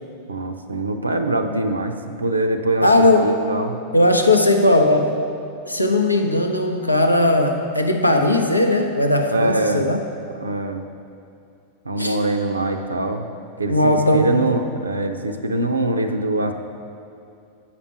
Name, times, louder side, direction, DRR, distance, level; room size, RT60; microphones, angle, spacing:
voice 1, 0.3-2.9 3.2-3.8 9.3-9.9 10.3-10.8 11.9-13.3 13.6-16.5, right 2 dB, 80° right, 6 dB, 0.5 m, -23 dB
voice 2, 2.8-3.5 3.9-5.2 5.7-10.0 12.0-12.2 13.7-14.5, left 1 dB, 85° left, 4 dB, 0.6 m, -18 dB
8.4 x 5.9 x 5.7 m, 2.5 s
figure-of-eight pair, 90°, 0 cm